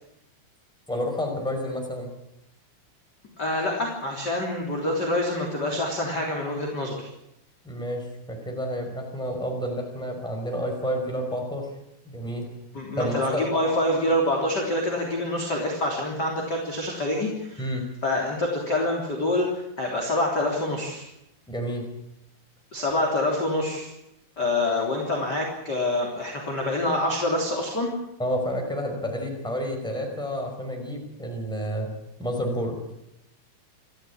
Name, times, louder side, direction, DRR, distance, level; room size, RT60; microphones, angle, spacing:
voice 1, 0.9-2.1 7.6-11.7 12.0-12.5 13.0-13.4 17.6-17.9 21.5-21.9 28.2-31.9 32.2-32.8, equal, ahead, 2 dB, 4.6 m, -30 dB
voice 2, 3.4-7.1 12.7-17.7 18.0-21.0 22.7-23.9 24.4-27.9, left 1 dB, 25° left, -1 dB, 3.3 m, -26 dB
28.0 x 13.0 x 8.7 m, 0.83 s
omnidirectional pair, 5.4 m